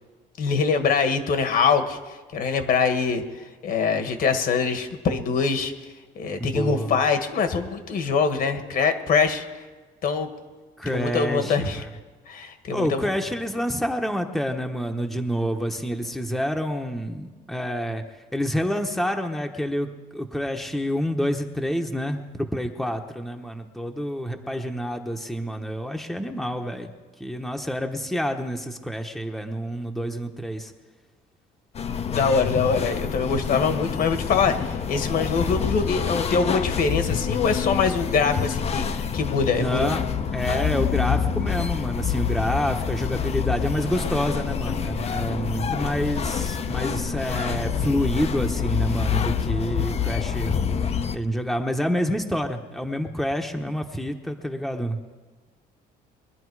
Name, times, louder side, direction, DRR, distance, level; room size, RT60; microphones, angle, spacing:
voice 1, 0.4-5.7 6.1-9.6 10.0-10.3 10.8-11.8 12.3-13.1 32.1-39.9, left 5 dB, 60° left, 7 dB, 1.6 m, -24 dB
voice 2, 6.4-7.0 10.8-11.8 12.7-18.0 18.3-26.9 27.2-30.7 39.6-40.0 40.3-50.5 51.1-55.0, equal, ahead, 4 dB, 1.0 m, -28 dB
sound 1, 31.8-51.2, left 7 dB, 40° left, 0.7 m, -27 dB
22.5 x 10.5 x 4.8 m, 1.3 s
cardioid pair, 110°, 17 cm